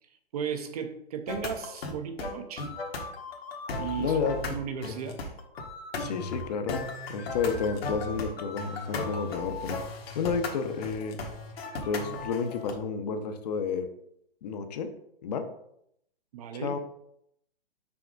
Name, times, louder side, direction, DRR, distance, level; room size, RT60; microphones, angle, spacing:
voice 1, 0.3-2.7 3.8-4.1 4.5-5.2 16.3-16.8, right 7 dB, 40° right, 7 dB, 0.7 m, -35 dB
sound 1, 1.3-12.7, left 3 dB, 75° left, 1.5 m, -36 dB
voice 2, 4.0-4.4 6.0-6.8 7.1-11.2 11.8-13.9 14.4-14.9 15.2-15.5 16.5-16.8, left 5 dB, 40° left, 7 dB, 0.8 m, -31 dB
5.8 x 4.9 x 3.9 m, 0.74 s
hypercardioid pair, 155°, 31 cm